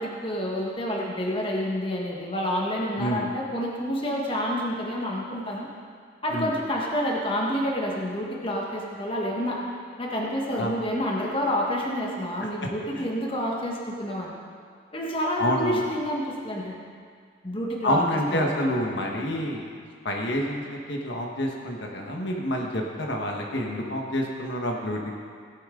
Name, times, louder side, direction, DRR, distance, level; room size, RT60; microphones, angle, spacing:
voice 1, 0.0-5.7 6.2-9.6 10.0-14.3 14.9-16.8 17.4-18.0 18.3-18.6, equal, 25° left, -2 dB, 1.4 m, -28 dB
voice 2, 15.4-15.8 17.8-19.7 20.0-25.2, equal, 60° left, 0 dB, 1.4 m, -28 dB
17.0 x 10.5 x 3.8 m, 2.1 s
head